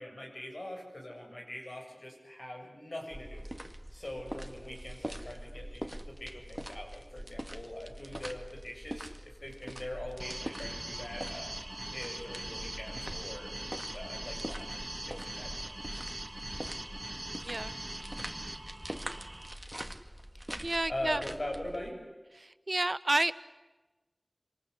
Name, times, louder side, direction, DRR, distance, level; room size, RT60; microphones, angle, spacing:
voice 1, 0.0-3.4 3.9-11.5 11.9-13.6 13.9-15.5 20.9-22.0, left 1 dB, 75° left, 1 dB, 7.9 m, -42 dB
sound 1, 3.1-21.9, equal, 15° right, 2.0 m, -44 dB
sound 2, 10.2-19.5, right 1 dB, 50° right, 2.1 m, -42 dB
voice 2, 20.6-21.2 22.4-23.3, right 2 dB, 65° right, 15 dB, 0.9 m, -30 dB
26.5 x 25.5 x 8.4 m, 1.2 s
wide cardioid pair, 40°, 0 cm